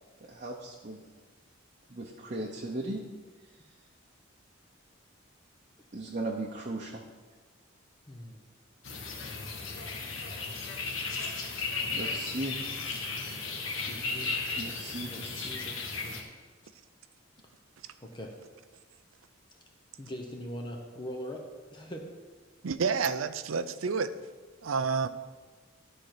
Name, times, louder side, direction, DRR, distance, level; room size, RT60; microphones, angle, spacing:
voice 1, 0.3-1.0 1.9-3.0 5.9-7.0 11.9-12.6 13.3-13.4 14.6-15.5, right 2 dB, 40° right, -1 dB, 0.9 m, -37 dB
voice 2, 8.1-8.4 13.7-14.3 15.1-16.2 18.0-18.3 20.0-22.1, equal, 25° left, 1 dB, 1.0 m, -42 dB
sound 1, 8.8-16.2, left 4 dB, 90° left, 1.5 m, -35 dB
voice 3, 22.6-24.1 24.6-25.1, right 5 dB, 90° right, 13 dB, 0.5 m, -29 dB
12.5 x 4.4 x 6.7 m, 1.4 s
head